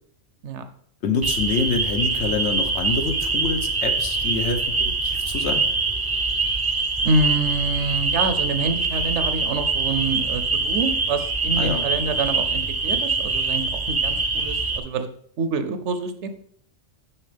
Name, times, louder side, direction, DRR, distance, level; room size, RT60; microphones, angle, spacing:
voice 1, 1.0-5.7 11.5-11.9, left 4 dB, 70° left, 6 dB, 1.1 m, -26 dB
sound 1, 1.2-14.8, right 4 dB, 30° right, 0.4 m, -24 dB
voice 2, 7.0-15.1 15.4-16.3, right 3 dB, 75° right, 9 dB, 0.9 m, -26 dB
7.1 x 6.0 x 3.4 m, 0.64 s
omnidirectional pair, 1.3 m